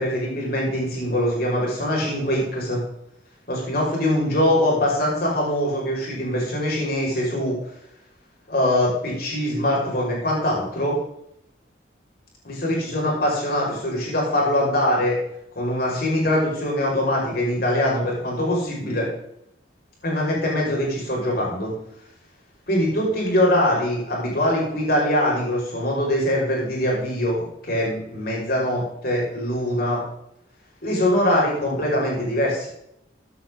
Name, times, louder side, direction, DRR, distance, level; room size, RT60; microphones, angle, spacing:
voice 1, 0.0-2.8 3.5-7.6 8.5-11.0 12.4-15.2 15.5-19.1 20.0-21.7 22.7-30.0 30.8-32.7, left 1 dB, 55° left, -3 dB, 5.7 m, -23 dB
14.5 x 9.7 x 3.9 m, 0.76 s
head